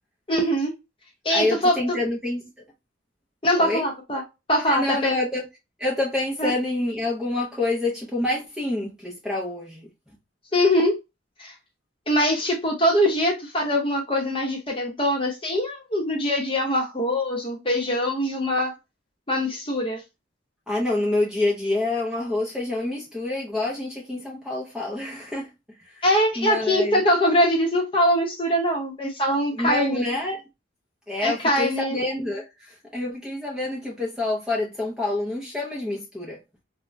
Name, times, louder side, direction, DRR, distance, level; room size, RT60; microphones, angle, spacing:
voice 1, 0.3-0.7 1.2-1.8 3.4-4.2 4.5-5.2 6.4-6.5 10.5-10.9 11.4-11.5 12.1-18.7 19.3-20.0 26.0-30.0 31.2-32.0, equal, 25° left, 0.8 m, -22 dB
voice 2, 1.3-2.5 3.6-3.9 4.7-5.4 5.8-9.9 20.7-25.5 25.8-26.0 26.4-27.0 29.6-30.4 31.1-36.4, left 2 dB, 5° right, 0.5 m, -27 dB
3.2 x 2.1 x 2.5 m
head